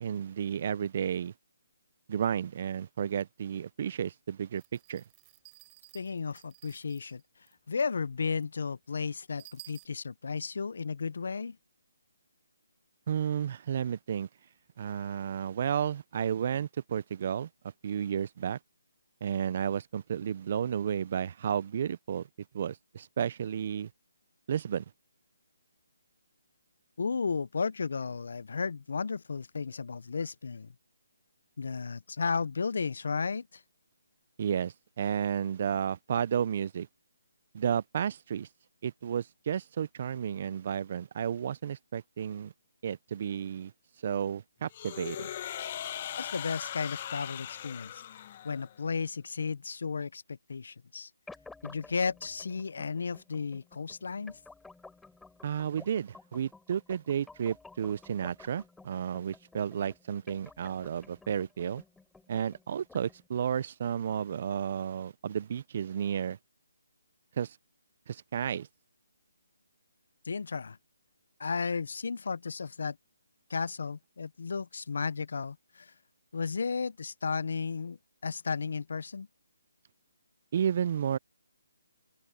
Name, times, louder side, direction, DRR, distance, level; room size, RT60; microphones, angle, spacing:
voice 1, 0.0-1.3 2.1-5.0 13.1-14.3 14.8-17.5 17.8-18.6 19.2-22.3 22.5-23.9 24.5-24.8 34.4-36.9 37.5-38.5 38.8-42.5 42.8-43.7 44.0-45.3 55.4-61.8 62.3-66.4 67.4-67.6 68.1-68.7 80.5-81.2, right 8 dB, 45° right, 0.6 m, -32 dB
sound 1, 4.6-7.2 7.5-7.6 7.8-7.9 8.4-8.5 8.8-8.9 9.4-9.8, right 31 dB, 20° right, 5.1 m, -54 dB
voice 2, 5.9-7.2 7.7-11.6 27.0-30.7 31.6-33.6 46.2-51.1 51.6-54.4 70.2-70.8 71.4-73.0 73.5-75.9 76.3-79.3, left 5 dB, 65° left, 0.6 m, -34 dB
sound 2, 44.7-48.8, left 11 dB, 35° left, 1.0 m, -39 dB
sound 3, 51.3-63.3, left 3 dB, 5° left, 5.5 m, -54 dB
open air
hypercardioid pair, 160°, 0 cm